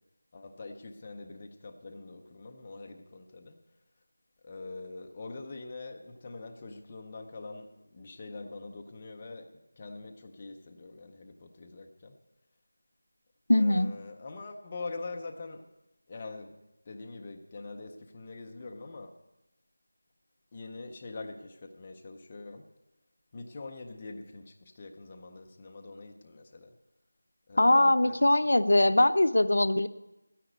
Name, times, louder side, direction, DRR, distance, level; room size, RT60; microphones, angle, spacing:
voice 1, 0.3-3.6 4.4-12.2 13.6-15.6 16.1-16.6 16.9-19.2 20.5-22.7 23.3-26.7 27.5-29.0, left 3 dB, 15° left, 3 dB, 0.6 m, -44 dB
voice 2, 13.5-13.9 27.6-29.9, left 1 dB, 65° left, 11 dB, 0.7 m, -22 dB
11.5 x 10.0 x 8.0 m, 0.96 s
figure-of-eight pair, 180°, 0 cm